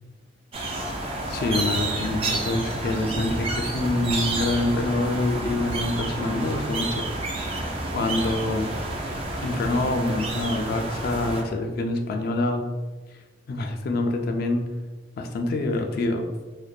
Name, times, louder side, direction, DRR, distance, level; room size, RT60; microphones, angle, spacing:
sound 1, 0.5-11.4, right 2 dB, 30° right, 0.3 m, -30 dB
voice 1, 1.3-7.6 7.9-8.8 9.4-12.7 13.5-14.7 15.2-16.3, left 2 dB, 55° left, 4 dB, 0.3 m, -26 dB
2.6 x 2.1 x 2.2 m, 1.2 s
head